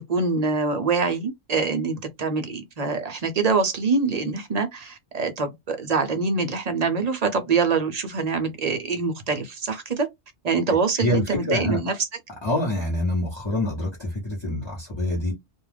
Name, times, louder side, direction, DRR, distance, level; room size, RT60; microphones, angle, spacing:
voice 1, 0.1-10.1 10.4-12.1, right 4 dB, 45° right, 0.6 m, -24 dB
voice 2, 11.0-12.0 12.4-15.3, left 1 dB, 25° left, 0.9 m, -26 dB
2.3 x 2.2 x 3.3 m
omnidirectional pair, 1.1 m